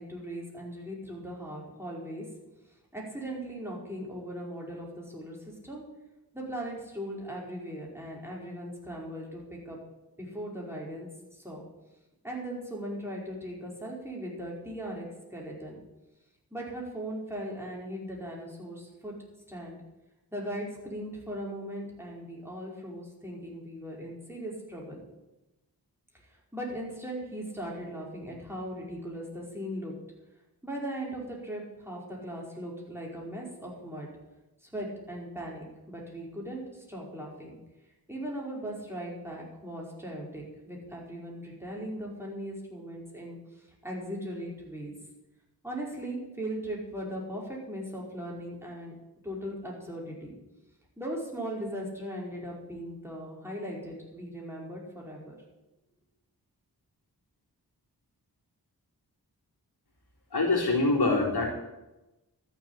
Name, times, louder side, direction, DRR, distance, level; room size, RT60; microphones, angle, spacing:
voice 1, 0.0-2.3 2.9-5.8 6.3-9.8 10.2-11.6 12.2-15.8 16.5-19.1 19.5-19.8 20.3-25.0 26.3-29.9 30.6-34.1 34.6-37.6 38.1-44.9 45.6-48.9 49.2-50.3 51.0-55.3, equal, 5° right, -3 dB, 5.2 m, -38 dB
voice 2, 60.3-61.5, left 3 dB, 75° left, -2 dB, 3.7 m, -24 dB
13.5 x 7.1 x 9.0 m, 0.99 s
wide cardioid pair, 55°, 39 cm